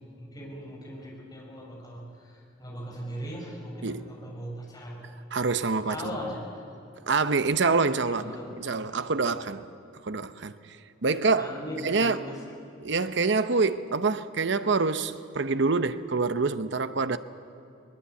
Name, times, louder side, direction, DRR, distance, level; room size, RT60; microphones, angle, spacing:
voice 1, 0.2-5.1 5.9-6.4 8.1-8.5 11.4-12.4, equal, 20° left, 6.7 m, -39 dB
voice 2, 5.3-6.1 7.1-9.6 10.0-10.6 11.0-11.5 11.8-12.2 12.8-17.2, right 4 dB, 60° right, 0.8 m, -26 dB
21.5 x 20.5 x 8.3 m
head